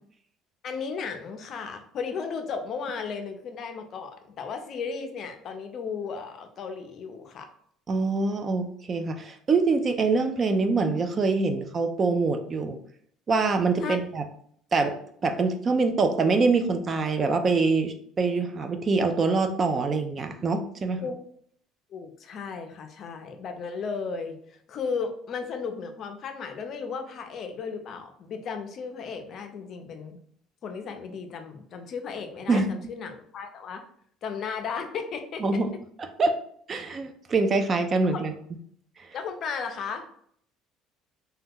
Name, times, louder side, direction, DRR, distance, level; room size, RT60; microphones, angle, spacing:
voice 1, 0.6-7.5 13.8-14.0 21.0-21.2 21.9-30.2 30.6-33.8 34.2-35.6 38.1-38.3 39.1-40.3, left 5 dB, 50° left, 6 dB, 0.5 m, -35 dB
voice 2, 7.9-12.8 13.3-14.2 14.7-15.0 15.2-21.0 32.5-32.7 35.4-35.7 36.2-36.4 36.7-38.3, right 3 dB, 30° right, 7 dB, 0.4 m, -24 dB
2.8 x 2.2 x 3.5 m, 0.64 s
cardioid pair, 120°, 0 cm